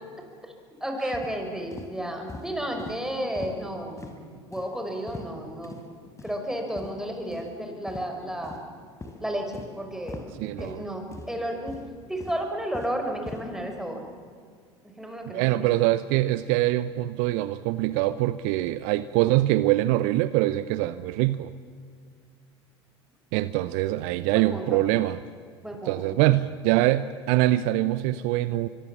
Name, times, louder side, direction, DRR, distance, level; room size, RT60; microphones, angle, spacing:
voice 1, 0.8-5.7 6.2-8.6 9.2-10.2 10.6-11.7 12.1-14.0 15.0-15.7 24.3-24.8 25.6-26.2, right 1 dB, 5° right, 3 dB, 5.7 m, -32 dB
sound 1, 1.1-1.3 1.7-1.9 2.3-2.5 2.8-3.0 3.4-3.6 4.0-4.1 4.5-4.7 5.1-5.3 5.6-5.8 6.2-6.4 6.7-6.9 7.3-7.5 7.9-8.0 8.4-8.7 9.0-9.2 9.5-9.7 10.1-10.2 10.6-10.8 11.1-11.3 11.7-11.9 12.2-13.0 13.3-13.4, left 3 dB, 20° left, 4.4 m, -40 dB
voice 2, 10.4-10.8 15.3-21.5 23.3-25.2 25.9-28.7, right 16 dB, 60° right, 15 dB, 0.8 m, -24 dB
24.5 x 24.0 x 7.2 m, 2.1 s
hypercardioid pair, 75°, 14 cm